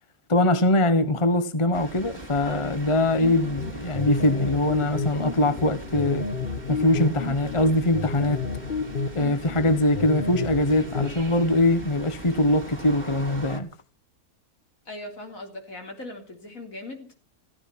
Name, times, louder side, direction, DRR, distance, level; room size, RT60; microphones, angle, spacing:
voice 1, 0.3-6.3 6.7-8.4 9.1-13.7, left 1 dB, 25° left, 1.1 m, -22 dB
sound 1, 1.7-13.6, right 1 dB, 30° right, 2.2 m, -41 dB
sound 2, 3.2-11.2, left 4 dB, 40° left, 1.5 m, -31 dB
voice 2, 14.9-17.2, left 1 dB, 65° left, 3.8 m, -39 dB
15.5 x 14.5 x 5.8 m
omnidirectional pair, 1.6 m